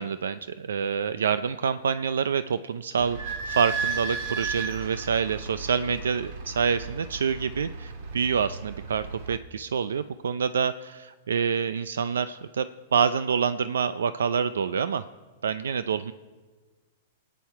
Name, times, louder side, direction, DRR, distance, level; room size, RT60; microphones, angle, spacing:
voice 1, 0.0-3.2 3.5-12.6 12.9-15.0 15.4-16.1, right 6 dB, 90° right, 13 dB, 0.4 m, -27 dB
Idling / Squeak, 3.0-9.4, right 4 dB, 60° right, 1.7 m, -35 dB
19.5 x 9.1 x 4.7 m, 1.4 s
hypercardioid pair, 125°, 0 cm